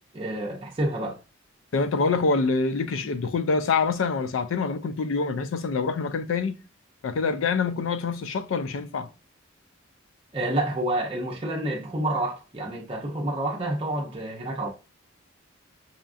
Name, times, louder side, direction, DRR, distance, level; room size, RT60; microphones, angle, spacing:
voice 1, 0.1-1.2 10.3-14.7, right 1 dB, 30° right, 0.6 m, -28 dB
voice 2, 1.7-6.6 7.0-9.1, left 4 dB, 80° left, 0.4 m, -25 dB
5.6 x 2.4 x 2.4 m
head